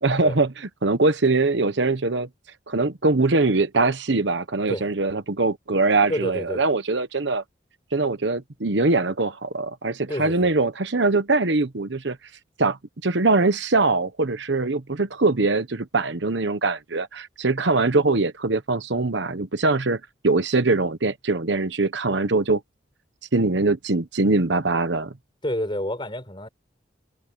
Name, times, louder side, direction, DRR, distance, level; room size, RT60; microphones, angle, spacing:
voice 1, 0.0-2.3 2.7-7.4 7.9-12.2 12.6-22.6 23.3-25.1, right 3 dB, 65° right, 1.1 m, -22 dB
voice 2, 6.1-6.6 10.1-10.5 25.4-26.5, left 1 dB, 25° left, 6.6 m, -29 dB
head